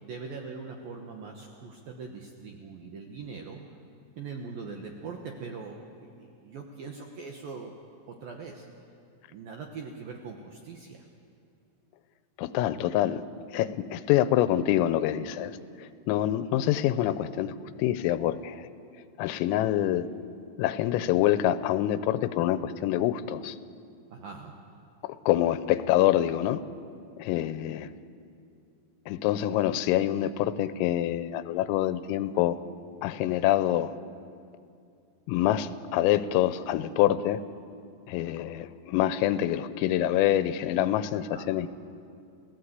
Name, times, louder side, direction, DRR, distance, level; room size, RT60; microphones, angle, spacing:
voice 1, 0.0-3.6 4.2-7.7 8.1-8.7 9.3-11.1 12.7-12.8 24.1-24.5 41.3-41.4, right 4 dB, 70° right, 2 dB, 2.2 m, -41 dB
voice 2, 12.4-13.2 13.5-15.5 16.1-17.5 17.8-18.7 19.2-20.1 20.6-23.6 25.0-26.6 27.2-27.9 29.1-32.6 33.0-33.9 35.3-37.4 38.1-41.7, left 12 dB, 85° left, 13 dB, 3.4 m, -26 dB
30.0 x 16.5 x 8.2 m, 2.4 s
omnidirectional pair, 5.9 m